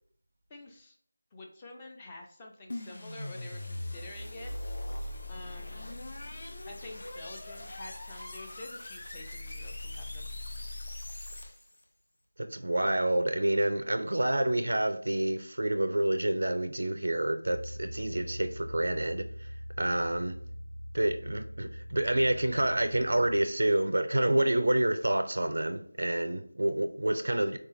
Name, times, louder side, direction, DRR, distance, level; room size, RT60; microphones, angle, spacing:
voice 1, 0.5-1.0 1.3-4.5 5.3-5.9 6.7-10.3, left 2 dB, 15° left, 1 dB, 0.4 m, -48 dB
sound 1, 2.7-11.8, left 1 dB, 55° left, 0.7 m, -40 dB
voice 2, 12.4-19.5 19.8-20.4 20.9-27.6, right 1 dB, 75° right, 9 dB, 0.4 m, -28 dB
sound 2, 17.4-23.5, equal, 80° left, 0.9 m, -42 dB
4.0 x 3.6 x 2.6 m, 0.62 s
figure-of-eight pair, 170°, 0 cm